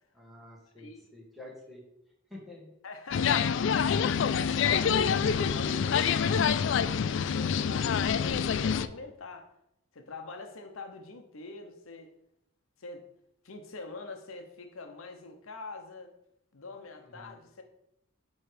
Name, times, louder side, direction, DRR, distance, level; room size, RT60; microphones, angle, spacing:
voice 1, 0.2-1.8 2.3-2.7 17.0-17.4, left 1 dB, ahead, -3 dB, 1.6 m, -49 dB
voice 2, 0.8-1.1 2.8-9.5 9.9-12.1 12.8-13.0 13.4-16.1 16.5-17.6, left 3 dB, 90° left, 6 dB, 0.9 m, -44 dB
sound 1, 3.1-8.9, left 7 dB, 65° left, 0.3 m, -26 dB
8.8 x 3.2 x 5.0 m, 0.81 s
head